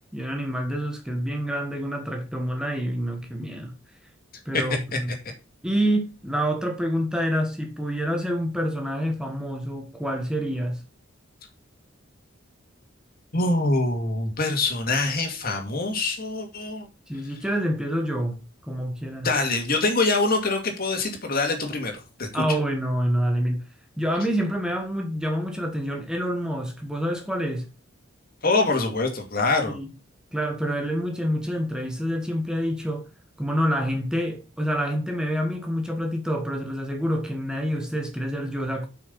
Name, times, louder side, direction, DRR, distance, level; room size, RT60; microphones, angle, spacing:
voice 1, 0.1-3.7 4.4-5.1 5.6-10.8 17.1-19.3 22.3-23.7 24.0-27.7 29.7-29.9 30.3-33.1 33.4-38.9, equal, 5° right, 1.4 m, -27 dB
voice 2, 13.3-16.9 19.2-22.4 28.4-29.8, left 3 dB, 50° left, 2.3 m, -24 dB
7.7 x 6.0 x 5.5 m
head